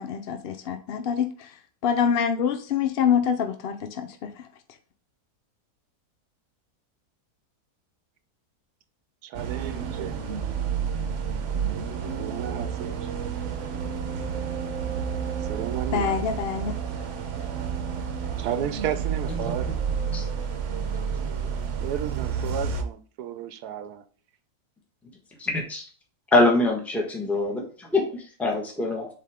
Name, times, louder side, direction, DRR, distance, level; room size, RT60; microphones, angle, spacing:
voice 1, 0.0-1.6 1.8-4.5 15.9-16.8, left 7 dB, 65° left, 7 dB, 0.6 m, -26 dB
voice 2, 9.2-10.2 12.2-13.1 15.5-16.2 18.4-19.7 21.8-24.0, right 10 dB, 85° right, 10 dB, 1.2 m, -33 dB
sound 1, 9.3-22.8, right 6 dB, 60° right, 1.0 m, -30 dB
voice 3, 19.4-19.7 20.1-20.2 25.4-25.8 26.3-29.1, left 2 dB, ahead, 0 dB, 1.1 m, -24 dB
7.5 x 3.5 x 3.6 m, 0.40 s
omnidirectional pair, 1.6 m